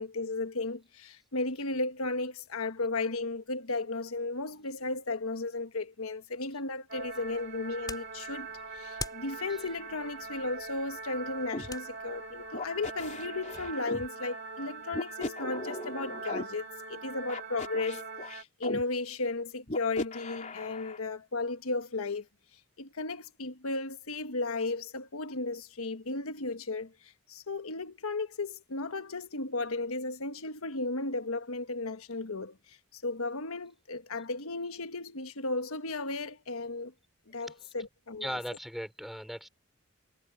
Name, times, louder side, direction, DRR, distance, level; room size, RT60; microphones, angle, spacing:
voice 1, 0.0-22.3 22.8-36.9 37.3-38.4, left 3 dB, 75° left, 1.3 m, -35 dB
sound 1, 6.9-18.4, right 4 dB, 50° right, 3.5 m, -43 dB
sound 2, 7.0-13.7, left 4 dB, 20° left, 4.5 m, -47 dB
sound 3, 11.5-11.7 12.5-14.1 14.9-16.4 17.3-18.8 19.7-21.0, left 2 dB, 35° left, 3.6 m, -38 dB
voice 2, 38.2-39.5, equal, ahead, 5.0 m, -38 dB
head